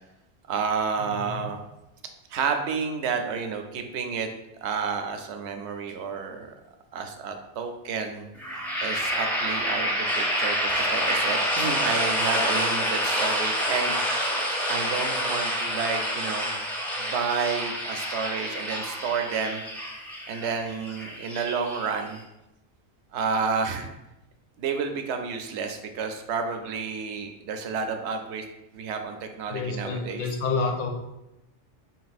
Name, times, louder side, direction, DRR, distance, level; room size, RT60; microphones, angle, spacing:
voice 1, 0.5-1.6 2.3-4.3 4.6-6.5 6.9-8.3 8.8-14.0 14.7-16.5 17.0-19.6 20.3-22.2 23.1-23.9 24.6-28.4 28.7-30.3, right 5 dB, 75° right, 6 dB, 0.9 m, -30 dB
sound 1, 8.4-22.2, equal, ahead, 0.4 m, -28 dB
voice 2, 29.5-30.9, left 4 dB, 55° left, 3 dB, 0.6 m, -28 dB
4.0 x 2.5 x 4.0 m, 0.92 s
omnidirectional pair, 1.2 m